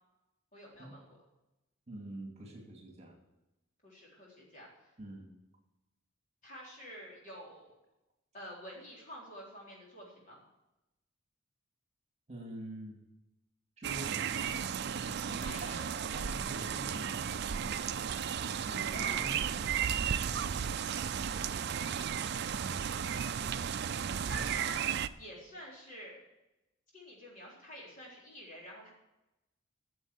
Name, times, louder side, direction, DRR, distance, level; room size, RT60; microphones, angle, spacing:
voice 1, 0.5-1.2 3.8-4.9 6.4-7.7 8.3-10.4 15.4-15.9 18.9-19.3 24.2-26.2 26.9-28.9, equal, 40° left, -3 dB, 4.1 m, -48 dB
voice 2, 1.9-3.2 5.0-5.3 12.3-13.0 13.8-17.2 18.4-20.7 21.3-21.6, right 1 dB, 35° right, 1 dB, 2.4 m, -47 dB
sound 1, 13.8-25.1, right 8 dB, 55° right, 0.4 m, -34 dB
9.6 x 7.2 x 8.1 m, 0.96 s
head